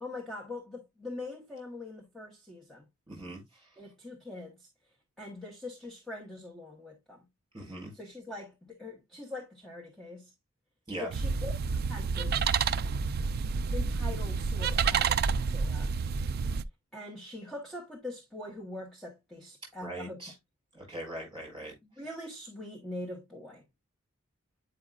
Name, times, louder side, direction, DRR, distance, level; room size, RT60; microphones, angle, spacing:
voice 1, 0.0-2.8 3.8-4.7 5.2-7.2 7.9-10.3 11.0-11.5 11.9-12.9 13.7-15.9 16.9-20.2 21.8-23.6, left 2 dB, ahead, 1.1 m, -43 dB
voice 2, 3.1-3.7 7.5-7.9 10.9-11.1 19.8-20.3 20.7-21.7, right 1 dB, 20° right, 4.5 m, -40 dB
sound 1, 11.1-16.6, right 5 dB, 45° right, 0.3 m, -29 dB
8.7 x 4.9 x 2.4 m
head